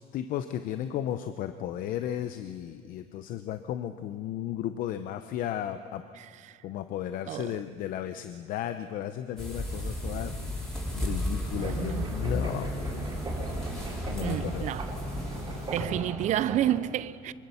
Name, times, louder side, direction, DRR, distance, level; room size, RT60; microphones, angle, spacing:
voice 1, 0.0-6.0 6.6-10.3 10.9-12.7 14.1-14.7, left 11 dB, 60° left, 0.8 m, -34 dB
voice 2, 6.2-6.6 7.3-7.6 11.5-12.3 14.2-14.9 15.7-17.3, right 12 dB, 50° right, 0.6 m, -31 dB
sound 1, 9.4-15.9, equal, 5° left, 5.8 m, -33 dB
sound 2, 11.5-16.8, right 2 dB, 25° right, 4.2 m, -39 dB
24.0 x 23.5 x 7.1 m
cardioid pair, 150°, 16 cm